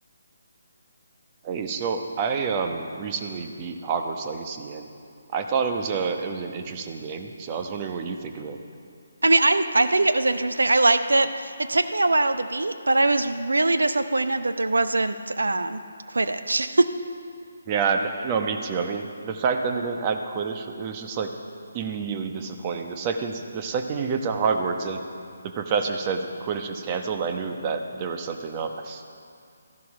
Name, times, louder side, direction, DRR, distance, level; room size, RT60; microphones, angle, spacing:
voice 1, 1.4-4.9 5.3-8.6 17.7-21.3 21.7-25.0 25.4-29.0, right 5 dB, 30° right, 5 dB, 1.0 m, -28 dB
voice 2, 9.2-15.8 16.1-16.9, right 2 dB, 90° right, 10 dB, 0.7 m, -22 dB
14.0 x 11.0 x 6.0 m, 2.3 s
figure-of-eight pair, 155°, 0 cm